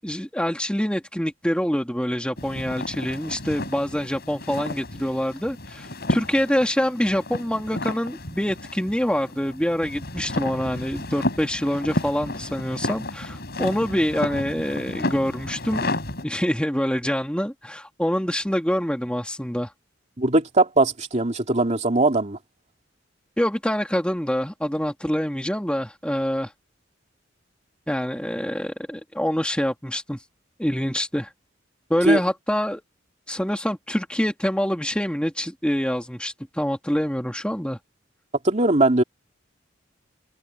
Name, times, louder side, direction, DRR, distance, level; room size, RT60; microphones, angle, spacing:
voice 1, 0.0-15.9 16.2-19.7 23.4-26.5 27.9-30.2 30.6-31.3 31.9-32.8 33.3-37.8, equal, 5° left, 2.4 m, -25 dB
sound 1, 2.4-16.2, left 1 dB, 55° left, 5.3 m, -32 dB
voice 2, 20.2-22.4 32.0-32.2 38.4-39.0, right 2 dB, 35° right, 2.8 m, -20 dB
head